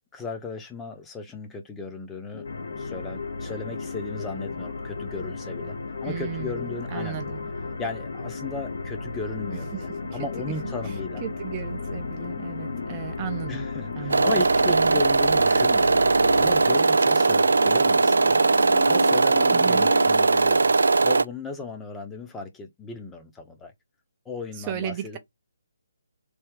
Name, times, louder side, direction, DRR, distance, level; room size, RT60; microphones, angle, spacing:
voice 1, 0.1-2.5 2.8-7.2 7.8-11.2 13.5-18.4 18.9-20.7 21.0-23.7 24.2-25.2, left 3 dB, 10° left, 0.8 m, -36 dB
sound 1, 2.3-20.2, left 7 dB, 45° left, 0.4 m, -38 dB
sound 2, 2.4-16.8, left 2 dB, 80° left, 1.8 m, -36 dB
voice 2, 6.0-7.5 9.5-10.4 10.8-13.7 13.9-14.4 14.7-15.0 19.5-19.9 24.5-25.2, right 11 dB, 25° right, 0.6 m, -36 dB
sound 3, 14.1-21.2, right 3 dB, 75° right, 0.3 m, -19 dB
3.4 x 3.1 x 4.7 m
figure-of-eight pair, 150°, 0 cm